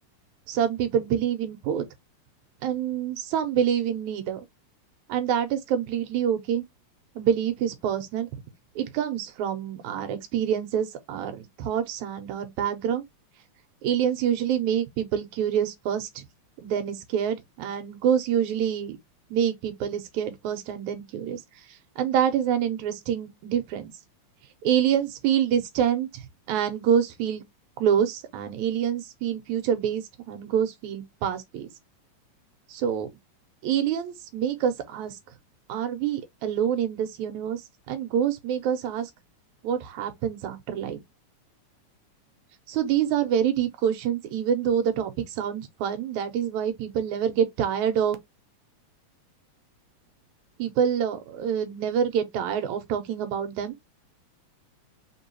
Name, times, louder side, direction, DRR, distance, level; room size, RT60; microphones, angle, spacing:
voice 1, 0.5-1.8 2.6-4.5 5.1-6.6 7.2-8.3 8.8-13.0 13.8-16.2 16.6-19.0 19.3-21.4 22.0-23.9 24.6-26.2 26.5-27.4 27.8-31.7 32.7-33.1 33.6-35.2 35.7-37.6 37.9-39.1 39.6-41.0 42.7-48.2 50.6-53.8, right 9 dB, 85° right, 2.3 m, -26 dB
4.6 x 3.8 x 2.8 m
omnidirectional pair, 3.3 m